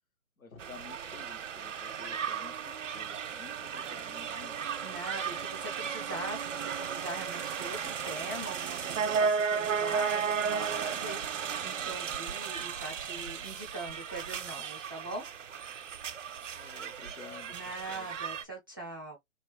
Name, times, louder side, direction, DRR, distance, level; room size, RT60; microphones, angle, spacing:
voice 1, 0.4-4.7 16.5-17.5 17.9-18.1, left 6 dB, 75° left, 1.6 m, -51 dB
sound 1, 0.6-18.4, right 6 dB, 60° right, 0.6 m, -35 dB
voice 2, 4.8-15.3 17.5-19.2, right 2 dB, 15° right, 0.5 m, -42 dB
3.4 x 3.0 x 3.1 m
hypercardioid pair, 155°, 42 cm